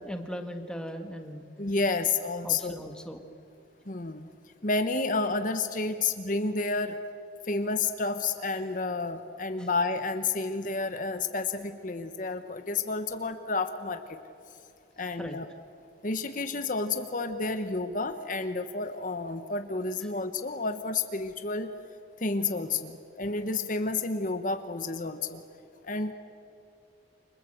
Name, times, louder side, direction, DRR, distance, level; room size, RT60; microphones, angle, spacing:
voice 1, 0.0-1.4 2.4-3.2 9.6-9.7 15.0-15.4 20.0-20.1, equal, 5° left, 5 dB, 1.7 m, -39 dB
voice 2, 1.6-2.8 3.9-4.3 4.6-7.0 7.5-14.2 15.0-15.4 16.0-21.7 22.2-25.4 25.8-26.1, left 3 dB, 45° left, 8 dB, 1.1 m, -30 dB
29.0 x 26.0 x 7.9 m, 2.6 s
head